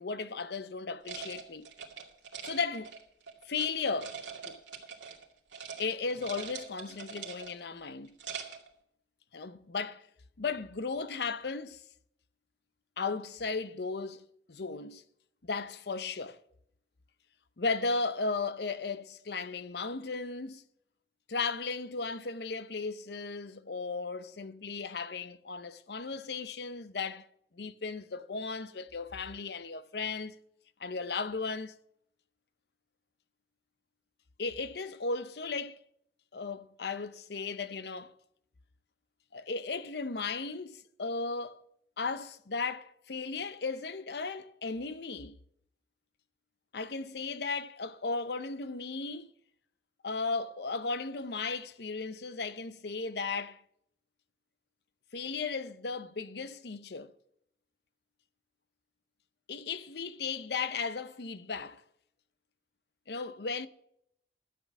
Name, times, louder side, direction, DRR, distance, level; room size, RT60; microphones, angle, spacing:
voice 1, 0.0-1.7 2.4-3.0 3.4-4.6 5.8-8.2 9.3-10.1 10.4-11.8 13.0-15.0 15.4-16.4 17.6-20.6 21.3-27.3 27.5-30.4 30.8-31.8 34.4-35.8 36.3-38.1 39.3-41.6 42.0-45.4 46.7-49.3 50.0-53.6 55.1-57.1 59.5-61.8 63.1-63.7, left 4 dB, 65° left, 0.7 m, -36 dB
sound 1, 1.0-3.7 4.0-5.2 5.5-5.8 6.1-7.7 8.0-8.7, right 6 dB, 90° right, 2.3 m, -43 dB
12.5 x 7.8 x 6.0 m
head